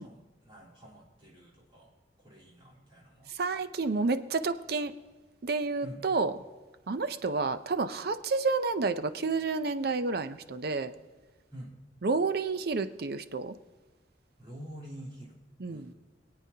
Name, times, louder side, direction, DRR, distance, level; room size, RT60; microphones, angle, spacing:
voice 1, 0.0-1.9 2.2-3.3 5.8-6.0 11.5-11.7 14.4-15.4 15.7-15.9, equal, 30° right, -6 dB, 3.6 m, -47 dB
voice 2, 3.3-4.9 5.4-6.3 6.9-10.9 12.0-13.5 15.6-15.9, right 4 dB, 60° right, 11 dB, 0.6 m, -30 dB
22.5 x 8.8 x 2.8 m, 1.3 s
head